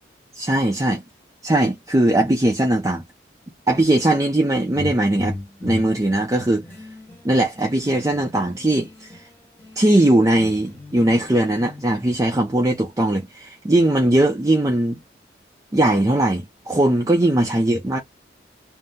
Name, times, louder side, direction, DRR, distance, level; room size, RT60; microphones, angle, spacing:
voice 1, 0.4-1.0 1.4-3.0 3.7-5.3 5.6-6.6 7.2-9.3 9.8-15.0 15.7-18.0, right 1 dB, 20° right, 0.5 m, -19 dB
sound 1, 4.7-9.3 9.6-12.1, left 2 dB, 10° left, 1.0 m, -37 dB
2.6 x 2.0 x 3.5 m
head